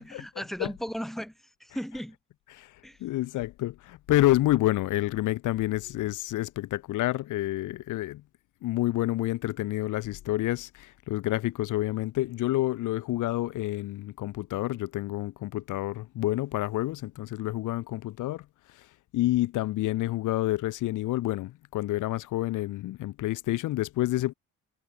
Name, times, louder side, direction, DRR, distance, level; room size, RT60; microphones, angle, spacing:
voice 1, 0.0-2.2 2.8-3.0, equal, ahead, 5.5 m, -36 dB
voice 2, 3.0-8.2 8.6-18.5 18.7-18.9 19.1-24.3, left 16 dB, 90° left, 1.8 m, -28 dB
cardioid pair, 90°, 30 cm